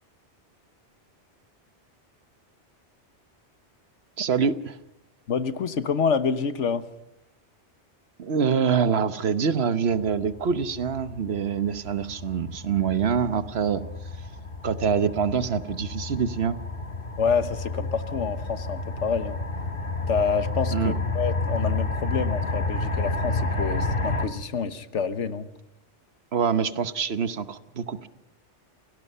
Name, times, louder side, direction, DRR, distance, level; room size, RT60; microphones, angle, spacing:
voice 1, 4.2-4.8 8.2-13.8 14.6-16.6 20.7-20.9 26.3-28.1, right 6 dB, 65° right, 12 dB, 1.2 m, -25 dB
voice 2, 5.3-6.9 17.2-19.4 20.1-25.5, left 6 dB, 85° left, 12 dB, 1.4 m, -27 dB
sound 1, 9.9-24.3, left 3 dB, 50° left, 1.8 m, -30 dB
28.5 x 18.0 x 5.6 m, 0.81 s
omnidirectional pair, 1.2 m